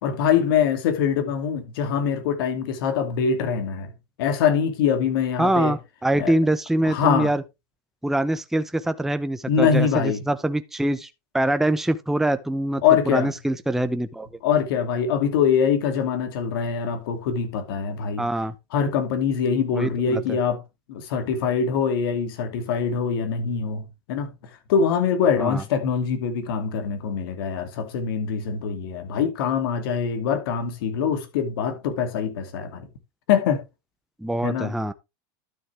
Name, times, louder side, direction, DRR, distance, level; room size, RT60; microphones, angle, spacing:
voice 1, 0.0-3.9 4.2-5.8 6.2-6.3 6.8-7.3 9.5-10.2 12.8-13.3 14.4-18.3 18.7-20.6 20.9-24.3 24.7-32.9 33.3-33.6 34.4-34.7, left 7 dB, 75° left, 2.6 m, -23 dB
voice 2, 5.4-7.4 8.0-11.1 11.3-14.3 18.2-18.5 19.7-20.4 25.4-25.6 34.2-34.9, right 1 dB, 5° right, 0.6 m, -24 dB
12.0 x 6.3 x 3.4 m
supercardioid pair, 120°, 12 cm